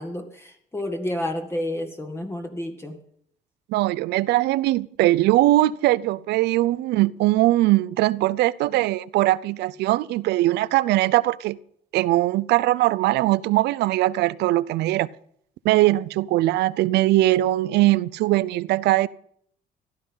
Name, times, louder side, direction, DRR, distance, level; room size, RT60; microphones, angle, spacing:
voice 1, 0.0-3.0, left 1 dB, 15° left, 2.2 m, -30 dB
voice 2, 3.7-11.6 11.9-15.1 15.6-19.1, right 16 dB, 80° right, 0.6 m, -21 dB
15.5 x 12.0 x 5.7 m
cardioid pair, 110°, 17 cm